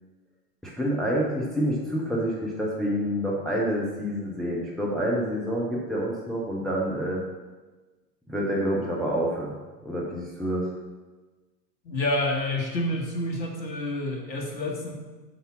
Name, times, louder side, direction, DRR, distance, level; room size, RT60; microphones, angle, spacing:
voice 1, 0.6-7.2 8.3-9.6 9.8-10.7, equal, ahead, -3 dB, 0.3 m, -27 dB
voice 2, 11.9-14.9, left 1 dB, 90° left, 1 dB, 1.7 m, -28 dB
5.8 x 5.5 x 5.9 m, 1.2 s
hypercardioid pair, 105°, 50 cm